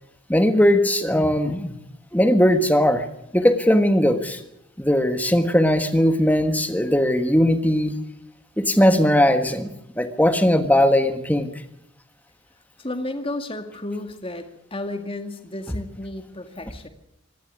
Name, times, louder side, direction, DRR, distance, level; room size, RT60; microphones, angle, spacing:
voice 1, 0.3-1.7 2.1-3.0 3.3-4.4 4.8-7.9 8.6-9.7 9.9-11.5, equal, 10° left, 8 dB, 1.5 m, -19 dB
voice 2, 12.8-16.9, left 2 dB, 25° left, 6 dB, 2.1 m, -32 dB
25.5 x 12.5 x 9.5 m, 0.81 s
head